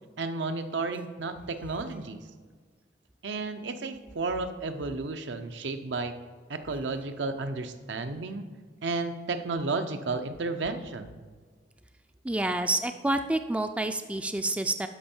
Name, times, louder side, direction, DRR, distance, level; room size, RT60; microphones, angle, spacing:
voice 1, 0.2-2.2 3.2-6.1 6.5-8.4 8.8-11.2, right 3 dB, 75° right, 8 dB, 0.6 m, -32 dB
voice 2, 12.2-14.9, right 2 dB, 5° right, 8 dB, 0.3 m, -28 dB
12.0 x 5.4 x 4.4 m, 1.5 s
head